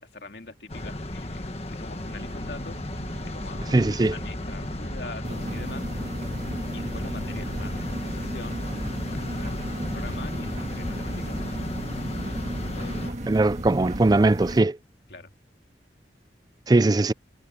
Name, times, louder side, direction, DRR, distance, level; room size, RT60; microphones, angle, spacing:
voice 1, 0.0-2.8 3.2-5.9 6.7-8.6 9.1-11.6 12.7-13.2 15.1-15.3, left 3 dB, 70° left, 2.3 m, -44 dB
sound 1, 0.7-13.1, left 1 dB, 35° left, 1.5 m, -34 dB
sound 2, 2.0-14.7, equal, 85° right, 5.3 m, -42 dB
voice 2, 3.7-4.1 13.3-14.8 16.7-17.1, right 2 dB, 20° right, 0.4 m, -20 dB
sound 3, 5.2-14.6, right 1 dB, 40° right, 1.9 m, -35 dB
head